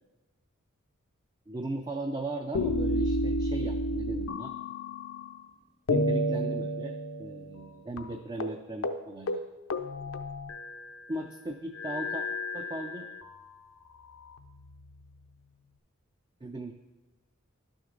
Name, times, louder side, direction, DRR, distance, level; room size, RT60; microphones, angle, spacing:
voice 1, 1.5-4.5 5.9-9.4 11.1-12.2 12.5-13.1 16.4-16.7, right 2 dB, 20° right, 4 dB, 0.4 m, -37 dB
sound 1, 2.5-5.5 5.9-7.7 8.0-8.1 8.4-8.6 8.8-9.0 9.3-11.0 11.7-13.3 14.0-15.0, left 1 dB, 75° left, 0.6 m, -31 dB
11.0 x 6.3 x 3.8 m, 1.1 s
head